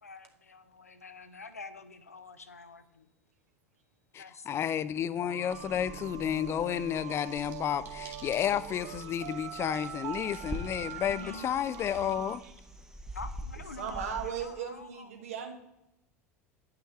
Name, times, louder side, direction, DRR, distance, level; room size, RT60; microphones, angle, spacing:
voice 1, 0.0-3.1 4.2-4.7 10.7-11.5 13.0-15.3, left 4 dB, 85° left, 0.5 m, -47 dB
voice 2, 4.1-12.4, left 9 dB, 30° left, 0.4 m, -31 dB
sound 1, 5.2-12.4, right 12 dB, 50° right, 0.4 m, -43 dB
sound 2, 5.5-14.5, equal, 5° right, 0.7 m, -46 dB
sound 3, 7.1-12.7, right 5 dB, 30° right, 1.8 m, -54 dB
voice 3, 13.8-15.5, right 8 dB, 70° right, 1.2 m, -37 dB
9.7 x 5.9 x 3.2 m
figure-of-eight pair, 75°, 8 cm